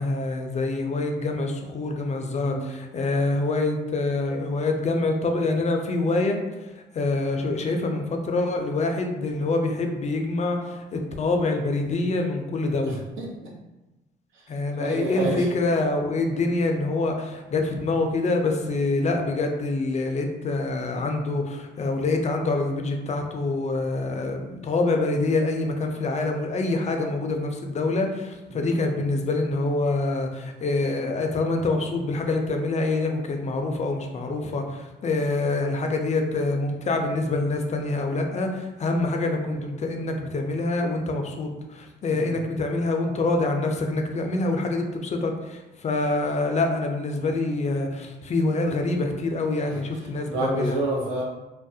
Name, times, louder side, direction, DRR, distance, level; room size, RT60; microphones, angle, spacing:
voice 1, 0.0-13.0 14.5-50.8, left 2 dB, 35° left, 4 dB, 0.4 m, -26 dB
voice 2, 2.4-2.7 12.8-13.5 14.7-15.5 28.5-28.6 42.1-42.3 50.3-51.2, right 2 dB, 80° right, -3 dB, 0.7 m, -29 dB
2.3 x 2.0 x 2.6 m, 1.1 s
cardioid pair, 90°, 20 cm